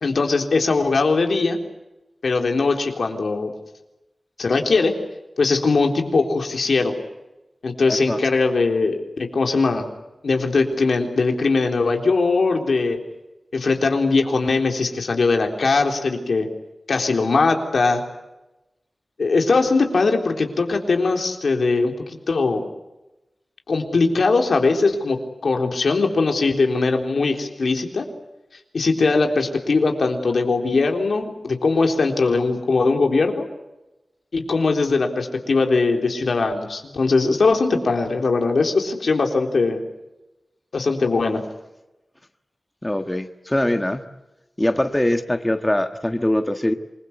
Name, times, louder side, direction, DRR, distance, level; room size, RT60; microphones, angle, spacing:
voice 1, 0.0-1.6 2.2-3.5 4.4-4.9 5.4-6.9 7.6-9.9 10.2-13.0 13.5-16.5 16.9-18.0 19.2-22.7 23.7-28.1 28.7-33.4 34.3-39.8 40.7-41.4, left 3 dB, 80° left, 3 dB, 3.8 m, -20 dB
voice 2, 7.9-8.2 42.8-44.0 44.6-46.7, left 1 dB, 15° left, 7 dB, 1.5 m, -22 dB
27.0 x 22.0 x 8.3 m, 1.0 s
wide cardioid pair, 95°, 0 cm